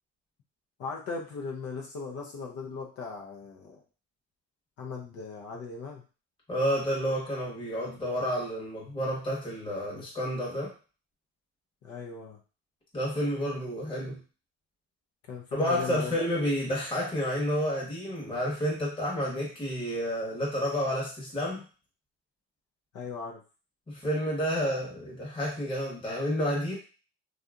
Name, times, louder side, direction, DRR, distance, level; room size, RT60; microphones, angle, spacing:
voice 1, 0.8-3.8 4.8-6.0 11.8-12.4 15.3-16.1 22.9-23.4, left 4 dB, 50° left, 0 dB, 0.6 m, -38 dB
voice 2, 6.5-10.7 12.9-14.2 15.5-21.6 23.9-26.7, equal, 15° left, -4 dB, 1.1 m, -30 dB
2.7 x 2.4 x 2.4 m, 0.35 s
supercardioid pair, 100°, 31 cm